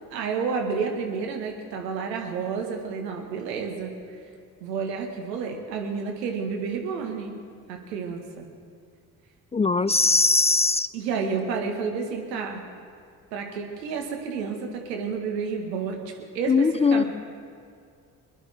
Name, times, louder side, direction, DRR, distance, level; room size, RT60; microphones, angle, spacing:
voice 1, 0.1-4.2 4.6-7.4 7.7-8.5 9.8-10.0 10.9-12.6 13.3-16.0 16.3-17.0, right 5 dB, 80° right, 3 dB, 1.9 m, -30 dB
voice 2, 9.5-10.9 16.5-17.0, left 3 dB, 15° left, 15 dB, 0.3 m, -20 dB
25.5 x 10.5 x 3.7 m, 2.3 s
figure-of-eight pair, 45°, 49 cm